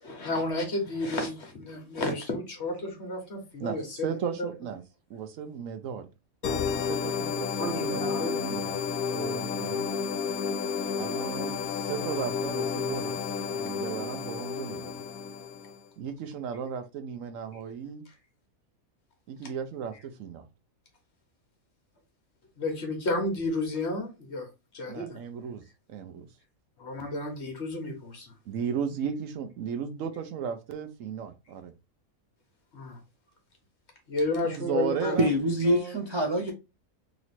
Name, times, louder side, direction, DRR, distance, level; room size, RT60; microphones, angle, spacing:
voice 1, 0.0-4.5 7.6-8.4 22.6-24.5 24.7-25.2 26.8-28.3 32.7-33.0 34.1-35.2, left 2 dB, 50° left, 1.3 m, -32 dB
voice 2, 3.6-4.8 5.1-6.1 6.4-8.9 9.1-9.9 10.9-15.0 16.0-18.0 19.3-20.4 24.9-25.6 25.9-26.3 28.5-31.7 34.4-35.3 35.6-35.9, right 7 dB, 70° right, 1.0 m, -35 dB
sound 1, 6.4-15.8, left 6 dB, 80° left, 1.1 m, -31 dB
voice 3, 35.2-36.5, equal, 40° right, 0.4 m, -25 dB
3.0 x 3.0 x 4.1 m
omnidirectional pair, 1.5 m